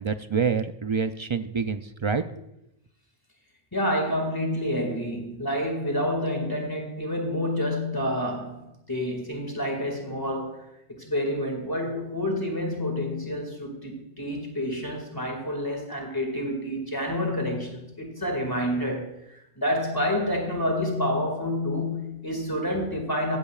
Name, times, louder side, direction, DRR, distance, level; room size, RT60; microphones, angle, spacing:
voice 1, 0.0-2.2, right 6 dB, 45° right, 9 dB, 0.4 m, -27 dB
voice 2, 3.7-23.4, left 1 dB, 20° left, 2 dB, 2.2 m, -28 dB
15.5 x 15.0 x 2.4 m, 0.85 s
omnidirectional pair, 1.1 m